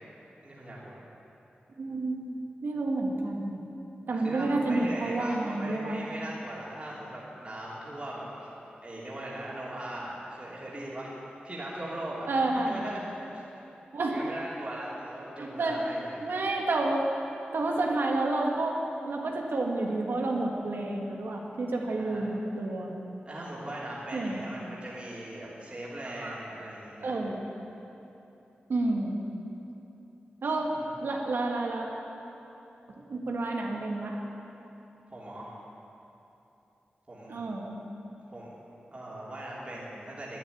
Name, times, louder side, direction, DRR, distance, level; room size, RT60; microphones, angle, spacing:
voice 1, 0.4-1.0 4.1-8.5 8.8-12.3 12.7-13.4 14.0-16.2 21.9-22.3 23.2-27.1 30.7-30.9 35.1-35.5 37.1-37.4 38.3-38.5 38.9-40.4, right 1 dB, 30° right, -7 dB, 3.1 m, -39 dB
voice 2, 1.8-3.6 4.1-6.0 12.3-12.8 13.9-14.2 15.4-15.8 16.2-17.0 17.5-23.0 24.1-24.4 26.2-26.4 27.0-27.4 28.7-29.2 30.4-30.7 31.0-31.9 33.1-34.2 37.3-37.8, right 2 dB, 80° right, 0 dB, 2.0 m, -30 dB
12.0 x 10.5 x 9.9 m, 3.0 s
wide cardioid pair, 95°, 4 cm